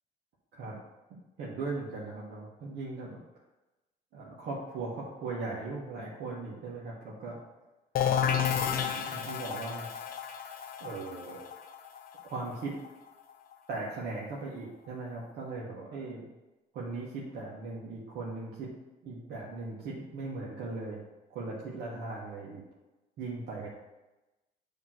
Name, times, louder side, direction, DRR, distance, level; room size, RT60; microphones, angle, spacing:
voice 1, 1.4-3.2 4.1-7.4 8.0-9.9 10.8-11.4 12.3-12.7 13.7-16.3 16.7-18.7 19.0-21.0 21.3-22.6 23.2-23.7, right 3 dB, 75° right, -5 dB, 1.4 m, -38 dB
sound 1, 8.0-13.5, left 8 dB, 60° left, 0.7 m, -32 dB
7.1 x 3.0 x 5.9 m, 1.0 s
cardioid pair, 110°, 17 cm